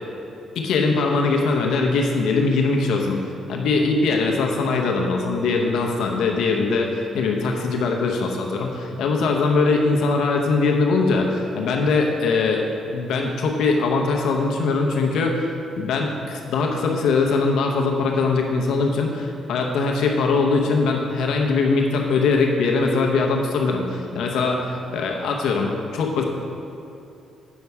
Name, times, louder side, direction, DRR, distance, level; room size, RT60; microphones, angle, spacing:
voice 1, 0.5-3.2 3.5-6.9 7.1-12.7 12.9-26.2, left 4 dB, 80° left, 1 dB, 0.9 m, -21 dB
8.4 x 6.8 x 4.7 m, 2.8 s
cardioid pair, 90°, 0 cm